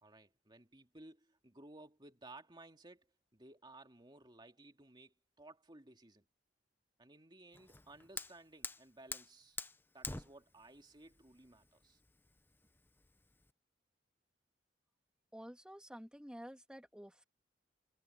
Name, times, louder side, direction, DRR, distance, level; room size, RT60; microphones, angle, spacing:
voice 1, 0.0-3.1 3.3-6.3 7.0-9.6 9.9-12.0, right 2 dB, 25° right, 2.4 m, -58 dB
Fire, 7.5-13.5, left 3 dB, 10° left, 0.9 m, -48 dB
voice 2, 15.3-17.2, equal, 5° right, 3.0 m, -51 dB
head